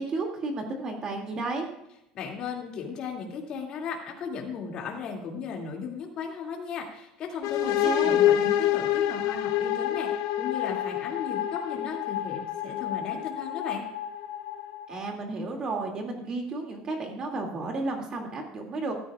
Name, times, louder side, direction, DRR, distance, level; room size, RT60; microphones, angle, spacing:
voice 1, 0.0-1.7 7.8-8.2 14.9-18.9, right 3 dB, 25° right, 2 dB, 2.4 m, -32 dB
voice 2, 2.1-13.8, left 5 dB, 35° left, 0 dB, 2.4 m, -36 dB
sound 1, 7.4-15.1, left 12 dB, 75° left, 0.8 m, -27 dB
15.5 x 13.5 x 2.4 m, 0.84 s
cardioid pair, 175°, 3 cm